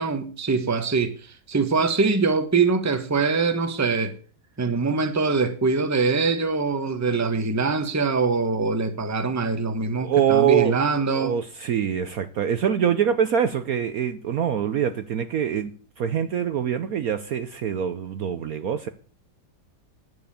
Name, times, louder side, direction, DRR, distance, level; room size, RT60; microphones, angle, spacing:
voice 1, 0.0-4.1 4.6-11.4, right 4 dB, 10° right, 0.9 m, -23 dB
voice 2, 10.0-10.7 11.1-15.7 16.0-18.9, right 8 dB, 60° right, 1.0 m, -24 dB
10.5 x 7.8 x 7.0 m
omnidirectional pair, 2.0 m